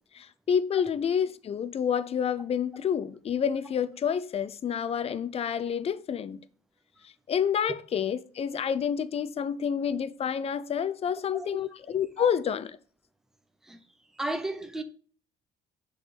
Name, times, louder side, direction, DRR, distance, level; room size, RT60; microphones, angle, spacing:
voice 1, 0.1-6.4 7.0-12.8, left 8 dB, 35° left, 0.5 m, -29 dB
voice 2, 14.2-14.8, right 1 dB, 5° right, 0.6 m, -33 dB
6.3 x 3.9 x 4.1 m
cardioid pair, 110°, 17 cm